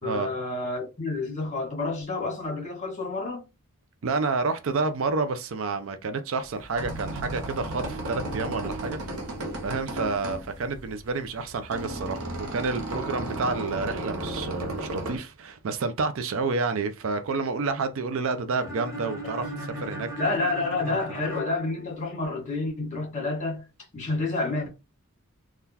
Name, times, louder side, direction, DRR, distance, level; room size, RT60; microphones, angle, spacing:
voice 1, 0.0-3.4 20.2-23.7 23.9-24.7, left 2 dB, 35° left, 1.4 m, -29 dB
voice 2, 4.0-9.0 9.6-20.1, right 4 dB, 60° right, 0.4 m, -29 dB
sound 1, 6.5-15.2, right 1 dB, 90° right, 0.8 m, -34 dB
sound 2, 18.6-22.5, equal, 15° right, 0.9 m, -38 dB
3.6 x 2.3 x 2.8 m
head